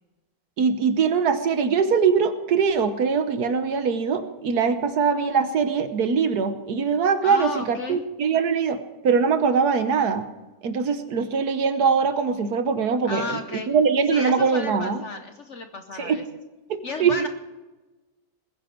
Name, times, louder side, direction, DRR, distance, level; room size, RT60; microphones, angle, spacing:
voice 1, 0.6-10.3 10.6-15.0 16.0-16.2 16.7-17.2, right 5 dB, 60° right, 10 dB, 1.4 m, -22 dB
voice 2, 7.2-8.0 13.0-13.7 14.1-16.2 16.8-17.3, left 3 dB, 50° left, 7 dB, 0.9 m, -33 dB
20.5 x 10.5 x 4.5 m, 1.2 s
omnidirectional pair, 1.9 m